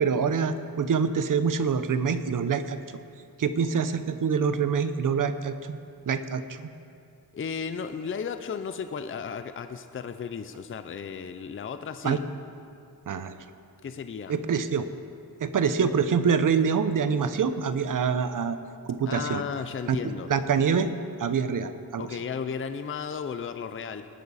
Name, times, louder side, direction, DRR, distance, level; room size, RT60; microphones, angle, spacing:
voice 1, 0.0-2.8 3.4-5.8 6.1-6.7 12.0-12.2 13.1-13.4 14.3-14.9 15.4-18.6 18.9-19.4 19.9-20.0 20.3-20.9 21.2-22.1, right 6 dB, 55° right, 11 dB, 0.7 m, -25 dB
voice 2, 7.3-12.2 13.8-14.3 19.1-20.3 22.0-24.1, left 6 dB, 35° left, 9 dB, 0.5 m, -34 dB
18.5 x 11.5 x 4.2 m, 2.5 s
wide cardioid pair, 145°, 37 cm